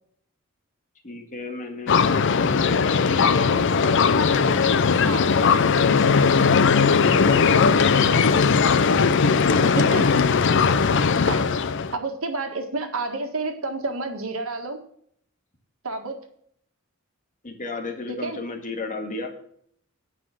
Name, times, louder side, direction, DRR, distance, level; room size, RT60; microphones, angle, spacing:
voice 1, 1.0-4.6 5.3-6.3 6.5-8.5 8.9-10.1 10.8-11.1 17.4-19.3, left 3 dB, 40° left, 3 dB, 1.9 m, -35 dB
sound 1, 1.9-11.9, left 5 dB, 60° left, 0.5 m, -19 dB
voice 2, 9.8-10.1 11.3-11.5 11.9-14.8 15.8-16.2 18.1-18.4, right 3 dB, 80° right, 5 dB, 1.7 m, -29 dB
9.7 x 5.6 x 7.6 m, 0.65 s
head